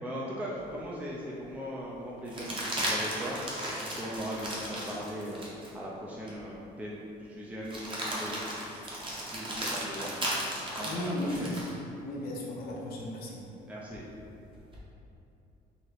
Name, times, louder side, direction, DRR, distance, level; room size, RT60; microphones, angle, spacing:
voice 1, 0.0-3.4 3.8-7.0 7.2-8.4 9.2-10.1 10.8-11.5 13.6-14.1, equal, 10° right, -5 dB, 0.5 m, -39 dB
sound 1, 0.7-0.8 2.3-5.7 6.3-6.4 7.6-11.7 13.9-14.8, right 1 dB, 30° right, 0.9 m, -35 dB
voice 2, 10.8-11.7 12.0-13.4, left 1 dB, 65° left, -3 dB, 0.8 m, -35 dB
4.1 x 2.8 x 3.2 m, 2.8 s
cardioid pair, 110°, 17 cm